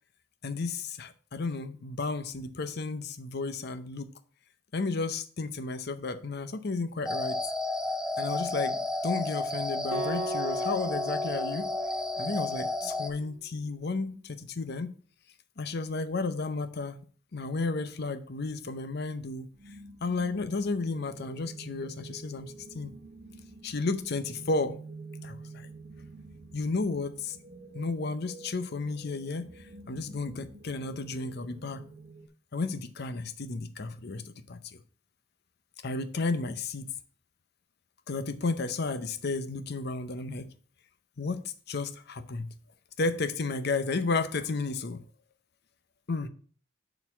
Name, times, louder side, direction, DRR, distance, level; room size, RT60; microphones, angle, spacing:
voice 1, 0.4-4.1 4.7-7.4 8.2-11.7 12.2-14.9 15.6-17.0 17.3-19.5 20.0-22.9 23.6-24.8 25.2-25.7 26.5-27.4 27.7-31.8 32.5-34.8 35.8-36.9 38.1-40.5 41.2-42.5 43.0-45.0 46.1-46.3, left 3 dB, 50° left, 0.6 m, -33 dB
sound 1, 7.0-13.1, left 2 dB, 5° right, 0.4 m, -32 dB
Acoustic guitar, 9.9-13.2, right 3 dB, 85° right, 1.6 m, -38 dB
sound 2, 19.5-32.3, right 3 dB, 50° right, 0.9 m, -48 dB
7.0 x 4.0 x 5.9 m
head